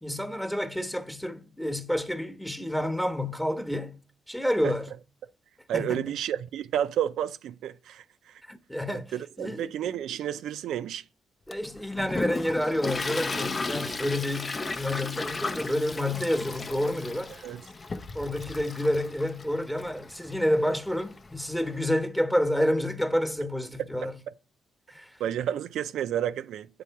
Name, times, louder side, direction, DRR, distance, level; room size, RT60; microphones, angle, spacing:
voice 1, 0.0-4.0 4.3-4.9 5.7-6.1 8.5-9.7 11.5-17.3 18.1-24.2 24.9-25.2, left 1 dB, 5° left, 1.1 m, -29 dB
voice 2, 5.7-8.4 8.9-11.0 17.4-17.6 25.2-26.7, right 10 dB, 80° right, 0.4 m, -31 dB
Toilet flush, 11.5-21.7, left 3 dB, 35° left, 0.6 m, -35 dB
8.5 x 3.8 x 4.6 m
supercardioid pair, 60°, 0 cm